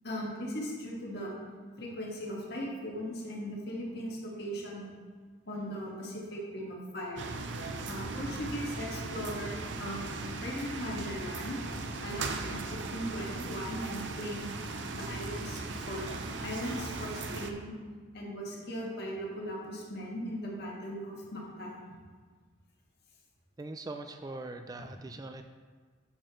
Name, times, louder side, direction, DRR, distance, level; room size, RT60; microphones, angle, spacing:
voice 1, 0.0-1.3 1.8-4.9 5.5-7.2 7.9-11.6 12.0-14.5 14.9-15.6 15.9-16.1 16.4-17.7 18.1-21.9, equal, 55° left, -3 dB, 1.7 m, -38 dB
sound 1, 7.2-17.5, right 3 dB, 70° right, 0.6 m, -38 dB
voice 2, 23.6-25.4, right 2 dB, 20° right, 7 dB, 0.3 m, -41 dB
10.5 x 6.5 x 3.1 m, 1.5 s
head